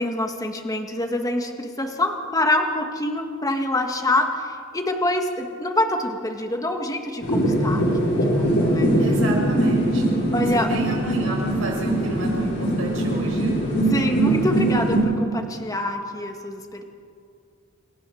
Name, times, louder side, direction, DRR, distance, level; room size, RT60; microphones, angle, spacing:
voice 1, 0.0-9.2 10.3-10.7 13.9-16.8, left 1 dB, 15° left, 4 dB, 1.7 m, -26 dB
sound 1, 7.2-15.0, right 1 dB, 55° left, 6.4 m, -22 dB
voice 2, 9.0-10.2 10.5-13.6, right 2 dB, 70° right, -1 dB, 6.4 m, -32 dB
28.0 x 13.5 x 7.1 m, 2.4 s
head